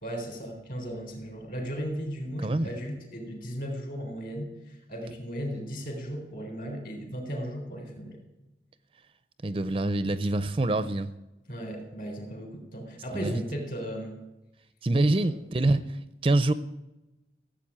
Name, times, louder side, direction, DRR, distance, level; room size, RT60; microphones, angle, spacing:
voice 1, 0.0-8.2 11.5-14.2 15.2-15.3, equal, 50° left, 3 dB, 3.8 m, -36 dB
voice 2, 2.4-2.7 9.4-11.1 13.1-13.4 14.8-16.5, right 2 dB, 30° right, 13 dB, 0.5 m, -25 dB
15.5 x 8.2 x 8.6 m, 0.98 s
head